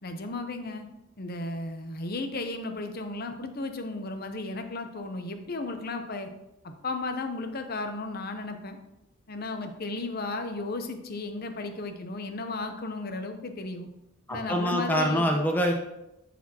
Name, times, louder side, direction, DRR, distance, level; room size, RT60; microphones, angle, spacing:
voice 1, 0.0-0.9 1.2-6.3 6.6-8.8 9.3-13.9 14.3-15.3, left 2 dB, 45° left, 6 dB, 0.7 m, -34 dB
voice 2, 14.3-15.7, equal, 10° left, 1 dB, 0.9 m, -25 dB
12.0 x 4.2 x 2.9 m, 0.92 s
head